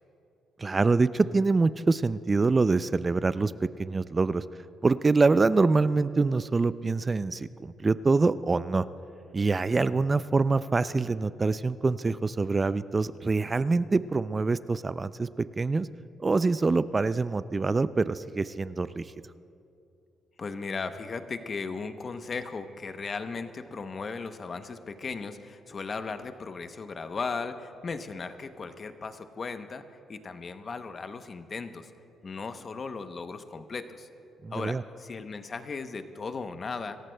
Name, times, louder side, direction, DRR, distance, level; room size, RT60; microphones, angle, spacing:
voice 1, 0.6-4.4 4.8-8.9 9.3-15.3 15.6-15.9 16.2-19.0 34.4-34.8, right 3 dB, 25° right, 15 dB, 0.3 m, -25 dB
voice 2, 20.4-29.8 30.1-31.9 32.2-34.1 34.5-37.0, left 4 dB, 40° left, 9 dB, 0.7 m, -36 dB
25.5 x 14.0 x 2.2 m, 2.7 s
cardioid pair, 90°, 0 cm